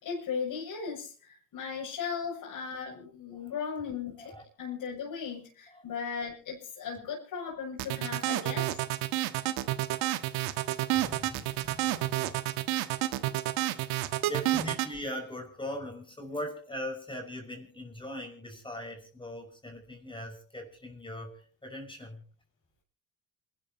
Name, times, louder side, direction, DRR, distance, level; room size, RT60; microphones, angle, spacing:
voice 1, 0.0-8.8 11.2-11.3, left 6 dB, 55° left, -5 dB, 6.7 m, -37 dB
sound 1, 7.8-14.9, right 16 dB, 70° right, 1.4 m, -29 dB
voice 2, 11.0-12.4 14.0-22.2, left 1 dB, 10° left, 3 dB, 5.7 m, -40 dB
28.0 x 13.5 x 2.9 m, 0.41 s
hypercardioid pair, 65°, 40 cm